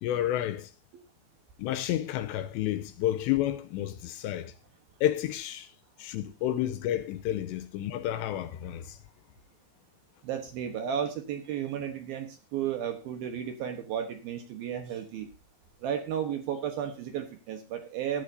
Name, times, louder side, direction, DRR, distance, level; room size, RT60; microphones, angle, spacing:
voice 1, 0.0-0.7 1.6-4.5 5.0-5.7 6.0-9.0, left 12 dB, 80° left, 2.7 m, -30 dB
voice 2, 10.2-15.3 15.8-18.2, right 9 dB, 70° right, 2.5 m, -33 dB
16.5 x 11.0 x 2.7 m
omnidirectional pair, 5.3 m